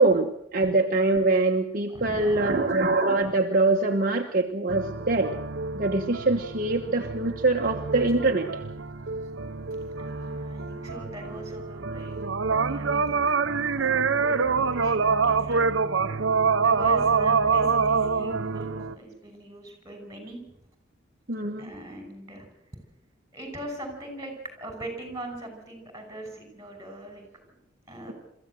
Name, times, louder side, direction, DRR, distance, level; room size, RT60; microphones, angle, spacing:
voice 1, 0.0-5.3 5.7-8.6 21.3-21.7, right 3 dB, 45° right, 2 dB, 1.3 m, -23 dB
voice 2, 1.9-2.8 10.0-12.3 12.7-13.3 13.8-15.9 16.6-20.4 21.6-22.5 23.3-27.2 27.9-28.1, right 1 dB, 15° right, 5 dB, 6.0 m, -40 dB
sound 1, 4.7-18.9, right 5 dB, 75° right, 0.9 m, -26 dB
23.5 x 14.5 x 7.8 m, 0.75 s
head